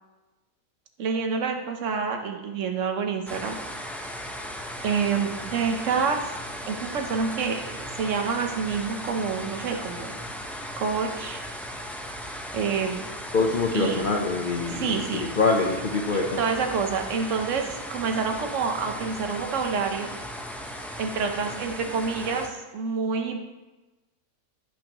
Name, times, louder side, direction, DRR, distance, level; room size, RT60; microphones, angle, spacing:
voice 1, 1.0-3.6 4.8-6.3 6.7-10.1 10.8-11.4 12.5-13.1 13.7-14.0 14.7-15.2 16.4-20.1 21.0-23.4, right 5 dB, 50° right, 4 dB, 1.2 m, -28 dB
sound 1, 3.3-22.5, equal, ahead, 0.4 m, -37 dB
voice 2, 13.3-16.4, left 3 dB, 40° left, 0 dB, 0.8 m, -25 dB
16.5 x 6.3 x 3.1 m, 1.1 s
omnidirectional pair, 1.8 m